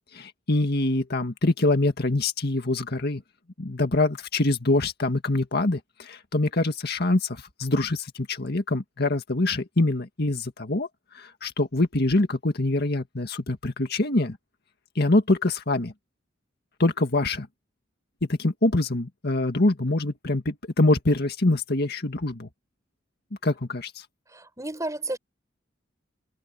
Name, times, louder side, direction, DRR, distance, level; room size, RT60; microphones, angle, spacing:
voice 1, 0.1-3.2 3.6-10.9 11.1-14.4 15.0-15.9 16.8-17.5 18.3-22.5 23.4-24.1, left 2 dB, 60° left, 1.9 m, -24 dB
voice 2, 24.3-25.2, right 2 dB, 15° right, 6.5 m, -32 dB
head